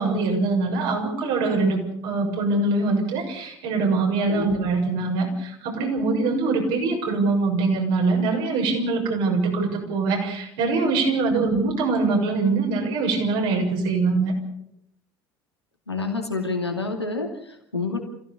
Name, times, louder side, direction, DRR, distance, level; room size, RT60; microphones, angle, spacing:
voice 1, 0.0-14.3, right 3 dB, 60° right, 1 dB, 6.8 m, -23 dB
voice 2, 15.9-18.0, left 3 dB, 85° left, 3 dB, 2.7 m, -28 dB
26.5 x 16.5 x 7.0 m, 0.72 s
figure-of-eight pair, 65°, 13 cm